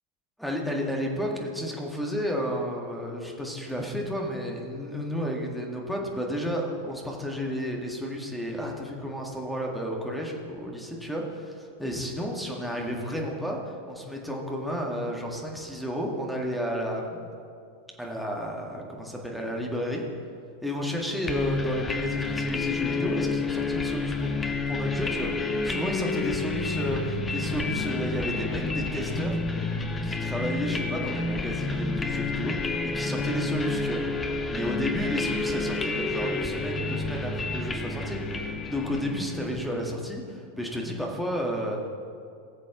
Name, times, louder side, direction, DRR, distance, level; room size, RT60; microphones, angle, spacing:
voice 1, 0.4-17.3 18.0-20.0 20.6-29.4 30.0-34.0 34.5-41.9, equal, ahead, -1 dB, 1.9 m, -32 dB
sound 1, 21.3-40.0, left 3 dB, 15° left, 0.9 m, -30 dB
19.0 x 7.4 x 3.8 m, 2.3 s
figure-of-eight pair, 90°, 0 cm